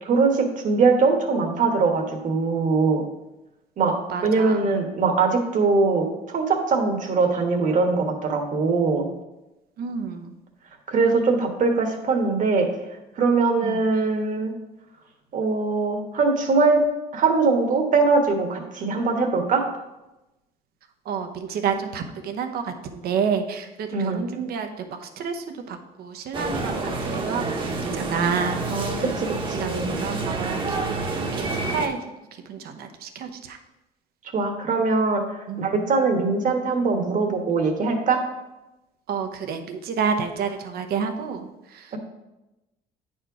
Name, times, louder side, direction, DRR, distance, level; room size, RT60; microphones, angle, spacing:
voice 1, 0.0-3.1 3.8-3.9 4.2-9.1 10.9-12.7 13.1-14.5 15.3-16.8 17.1-19.6 23.9-24.2 28.7-29.9 34.3-38.2 41.9-42.0, right 4 dB, 50° right, 4 dB, 1.4 m, -22 dB
voice 2, 3.8-4.7 9.8-10.3 13.6-13.8 21.1-28.7 29.5-32.0 32.5-33.6 35.5-35.6 39.1-41.9, right 6 dB, 65° right, 6 dB, 0.9 m, -29 dB
sound 1, 26.3-31.9, right 3 dB, 30° right, 1.1 m, -28 dB
8.9 x 4.4 x 4.8 m, 0.98 s
cardioid pair, 110°, 17 cm